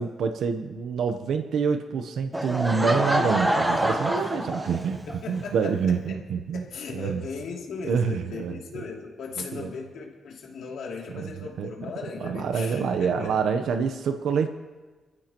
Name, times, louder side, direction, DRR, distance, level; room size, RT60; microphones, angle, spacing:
voice 1, 0.0-6.7 6.9-7.2 7.8-8.6 9.5-9.7 11.1-11.7 12.2-14.5, right 6 dB, 85° right, 7 dB, 0.8 m, -27 dB
Laughter / Crowd, 2.3-5.2, right 1 dB, 10° right, 1.0 m, -26 dB
voice 2, 5.1-13.4, left 5 dB, 90° left, -1 dB, 2.7 m, -38 dB
27.5 x 14.5 x 3.0 m, 1.3 s
wide cardioid pair, 170°, 0 cm